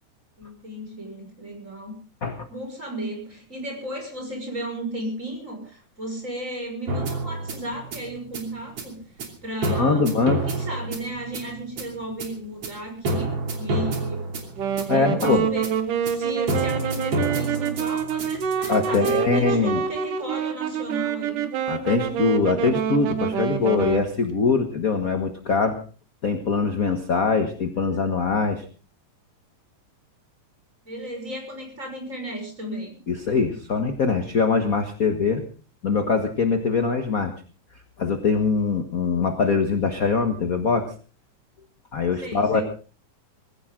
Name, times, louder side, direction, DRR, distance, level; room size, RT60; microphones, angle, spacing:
voice 1, 0.4-2.0 2.5-9.0 9.4-10.2 10.5-14.3 14.9-15.7 16.0-21.5 30.8-33.0 42.2-42.6, right 1 dB, 20° right, 3 dB, 6.0 m, -34 dB
sound 1, 6.9-19.2, right 2 dB, 50° right, 3.7 m, -29 dB
voice 2, 9.7-10.4 14.9-15.5 18.7-19.8 21.7-25.8 26.2-28.6 33.1-35.4 35.8-37.3 38.0-40.9 41.9-42.6, left 4 dB, 50° left, 6 dB, 1.1 m, -22 dB
Wind instrument woodwind instrument, 14.6-24.1, right 8 dB, 85° right, 3.1 m, -26 dB
21.0 x 16.0 x 3.8 m, 0.37 s
omnidirectional pair, 3.6 m